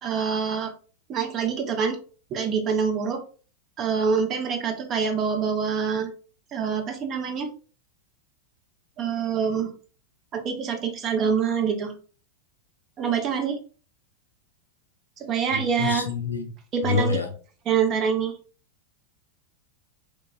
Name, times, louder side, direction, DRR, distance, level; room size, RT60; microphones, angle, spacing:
voice 1, 0.0-0.7 1.1-2.0 2.3-3.2 3.8-6.1 6.5-7.5 9.0-9.7 10.3-11.9 13.0-13.6 15.2-16.1 16.7-17.2 17.7-18.4, right 6 dB, 30° right, 4 dB, 0.6 m, -25 dB
voice 2, 15.5-16.5 16.8-17.3, left 3 dB, 80° left, 5 dB, 0.5 m, -27 dB
3.1 x 2.1 x 2.5 m, 0.39 s
figure-of-eight pair, 90°, 0 cm